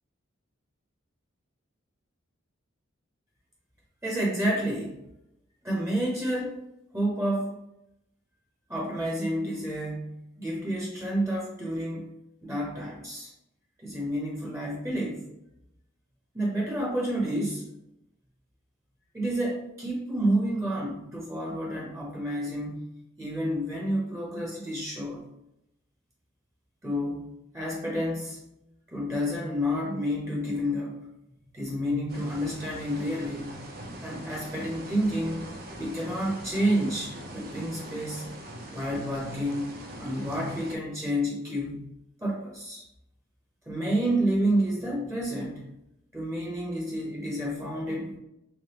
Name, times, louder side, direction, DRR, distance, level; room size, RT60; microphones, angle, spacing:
voice 1, 4.0-5.0 5.6-6.6 6.9-7.5 8.7-12.1 12.4-13.3 13.8-15.3 16.3-17.6 19.1-22.8 23.2-25.2 26.8-27.3 27.5-28.4 28.9-31.0 31.4-33.6 34.0-35.5 35.8-38.3 38.7-39.7 40.0-41.9 42.2-42.8 43.7-45.7 46.1-48.2, equal, 15° right, -3 dB, 0.7 m, -29 dB
sound 1, 32.1-40.8, right 1 dB, 50° right, 0.5 m, -42 dB
3.4 x 3.2 x 2.9 m, 0.84 s
head